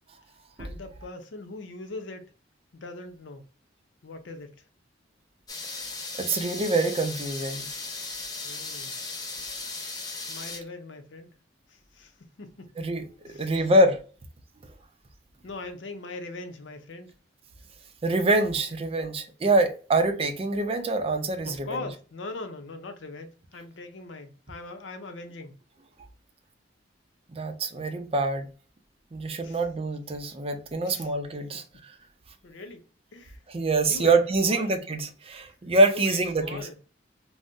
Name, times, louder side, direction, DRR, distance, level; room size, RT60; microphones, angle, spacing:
voice 1, 0.6-2.2 2.7-3.5 4.0-4.5 8.4-9.0 10.3-11.3 11.7-12.7 13.2-13.6 15.4-17.1 21.4-25.6 29.4-29.6 30.9-31.1 31.5-31.6 32.4-32.8 33.1-33.4 33.9-34.8 35.9-36.7, left 3 dB, 90° left, 0.6 m, -41 dB
sound 1, 5.5-10.6, left 3 dB, 20° left, 0.5 m, -36 dB
voice 2, 6.2-7.7 12.8-14.0 18.0-21.8 27.3-28.5 29.1-31.6 33.5-36.7, right 2 dB, 30° right, 0.5 m, -25 dB
2.6 x 2.1 x 3.5 m
head